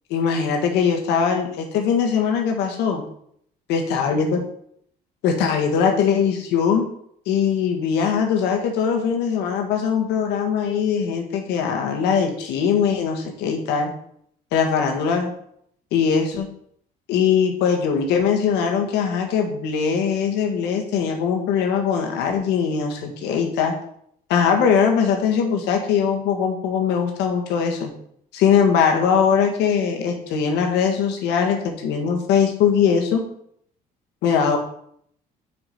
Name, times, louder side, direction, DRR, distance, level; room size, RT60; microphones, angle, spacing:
voice 1, 0.1-3.0 3.7-4.4 5.2-6.8 7.3-13.9 14.5-15.3 15.9-16.5 17.1-23.7 24.3-27.9 28.3-33.2 34.2-34.6, left 7 dB, 90° left, 3 dB, 1.6 m, -21 dB
6.2 x 6.2 x 5.7 m, 0.68 s
cardioid pair, 110°, 17 cm